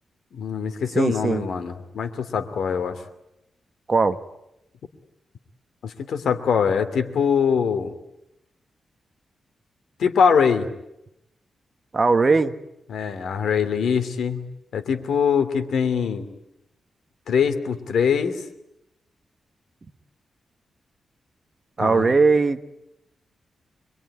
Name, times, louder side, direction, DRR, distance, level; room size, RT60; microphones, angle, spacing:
voice 1, 0.3-3.0 5.8-7.9 10.0-10.7 12.9-14.4 14.7-16.3 17.3-18.4 21.8-22.1, left 6 dB, 80° left, 8 dB, 2.7 m, -23 dB
voice 2, 0.9-1.4 3.9-4.2 11.9-12.5 21.8-22.7, right 4 dB, 30° right, 10 dB, 1.2 m, -19 dB
26.0 x 22.0 x 9.9 m, 0.86 s
wide cardioid pair, 150°, 0 cm